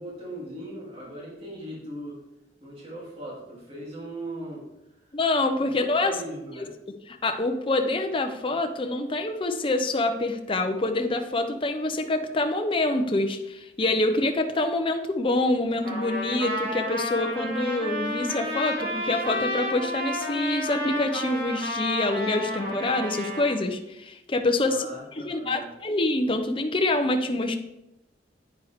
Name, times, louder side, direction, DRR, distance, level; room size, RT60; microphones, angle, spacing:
voice 1, 0.0-2.2 2.6-4.7 5.6-5.7 6.0-6.7 24.6-25.7, right 1 dB, 35° right, -5 dB, 3.0 m, -39 dB
voice 2, 5.1-6.1 6.6-6.7 7.1-24.9 25.2-27.6, left 2 dB, 30° left, 5 dB, 0.7 m, -26 dB
Trumpet, 15.8-23.5, equal, 55° right, 3.0 m, -31 dB
9.3 x 9.3 x 3.6 m, 0.91 s
head